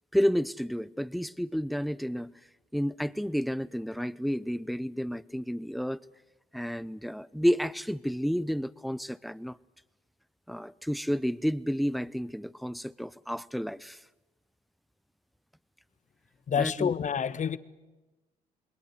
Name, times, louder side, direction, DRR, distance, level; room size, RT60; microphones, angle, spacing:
voice 1, 0.1-2.3 2.7-6.0 6.5-9.6 10.5-14.0 16.6-16.9, equal, ahead, 0.8 m, -30 dB
voice 2, 16.5-17.6, left 7 dB, 40° left, 1.2 m, -28 dB
27.5 x 22.0 x 8.0 m
hypercardioid pair, 50°, 19 cm